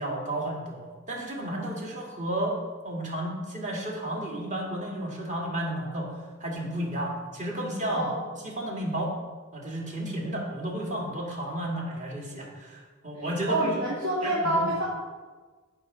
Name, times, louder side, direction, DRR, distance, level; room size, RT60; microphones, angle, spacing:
voice 1, 0.0-2.6 2.8-6.1 6.4-8.1 8.4-9.1 9.5-13.8 14.2-14.7, right 1 dB, 35° right, -2 dB, 2.2 m, -32 dB
voice 2, 7.9-8.2 13.1-14.8, right 1 dB, 65° right, -8 dB, 2.4 m, -27 dB
14.5 x 6.6 x 4.0 m, 1.4 s
head